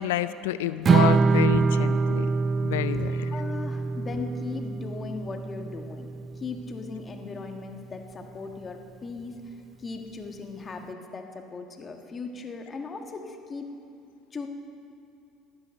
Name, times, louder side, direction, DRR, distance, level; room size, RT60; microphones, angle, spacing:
voice 1, 0.0-2.3 2.6-3.3, left 13 dB, 85° left, 14 dB, 0.4 m, -29 dB
Strum, 0.9-7.1, right 4 dB, 35° right, 0.6 m, -25 dB
voice 2, 2.9-6.1 6.3-13.8 14.3-14.5, left 4 dB, 30° left, 4 dB, 1.5 m, -38 dB
15.0 x 9.9 x 6.5 m, 2.5 s
hypercardioid pair, 75°, 0 cm